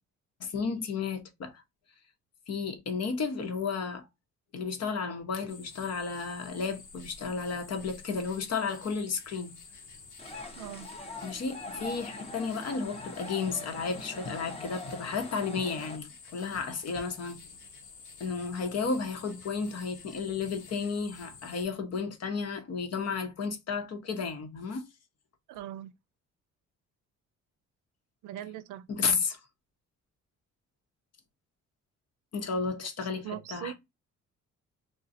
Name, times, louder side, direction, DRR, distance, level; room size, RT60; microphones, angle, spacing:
voice 1, 0.4-1.6 2.5-4.0 4.5-9.5 11.2-17.4 18.2-24.9 28.9-29.4 32.3-33.7, left 5 dB, 55° left, 1.0 m, -33 dB
sound 1, 5.5-21.6, left 4 dB, 75° left, 1.1 m, -50 dB
sound 2, 10.2-16.0, left 2 dB, 20° left, 0.9 m, -42 dB
voice 2, 10.5-10.9 25.5-25.9 28.2-29.2 33.0-33.7, right 12 dB, 90° right, 0.5 m, -41 dB
2.5 x 2.3 x 4.0 m
cardioid pair, 90°, 30 cm